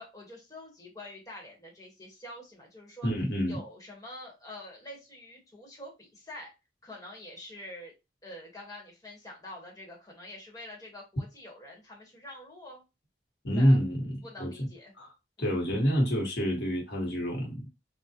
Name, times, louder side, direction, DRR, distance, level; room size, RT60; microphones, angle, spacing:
voice 1, 0.0-3.1 3.5-6.5 6.8-7.9 8.2-12.8 13.5-13.8 14.2-14.9 15.4-15.5, left 1 dB, 20° left, 1.1 m, -46 dB
voice 2, 3.0-3.6 13.4-14.5 15.0-15.1 15.4-17.7, equal, 70° left, 1.1 m, -27 dB
3.6 x 2.1 x 2.8 m
head